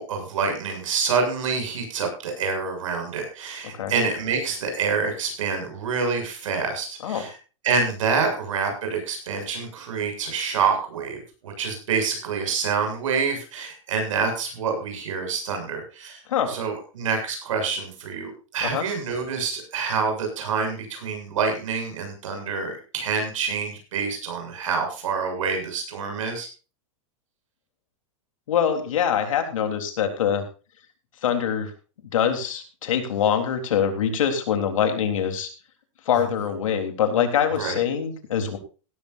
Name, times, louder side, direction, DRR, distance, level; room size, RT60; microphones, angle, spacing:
voice 1, 0.0-7.3 7.6-16.2 16.5-26.5 37.6-37.8, right 5 dB, 80° right, 4 dB, 7.2 m, -27 dB
voice 2, 28.5-30.4 31.2-31.7 32.1-35.5 36.1-38.6, left 8 dB, 90° left, 6 dB, 3.7 m, -24 dB
17.0 x 14.0 x 2.6 m, 0.34 s
supercardioid pair, 170°, 16 cm